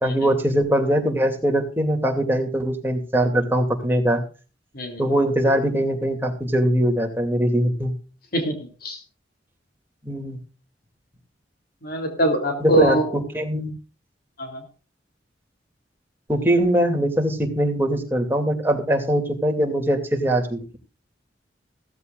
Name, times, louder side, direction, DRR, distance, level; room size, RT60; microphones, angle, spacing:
voice 1, 0.0-4.2 5.0-7.9 10.0-10.4 12.6-13.0 13.3-13.7 16.3-20.8, right 1 dB, 10° right, 3 dB, 2.6 m, -21 dB
voice 2, 4.7-5.1 8.3-8.5 8.8-9.0 11.8-13.1 14.4-14.6, right 2 dB, 55° left, 5 dB, 3.4 m, -23 dB
15.5 x 15.0 x 2.5 m, 0.35 s
head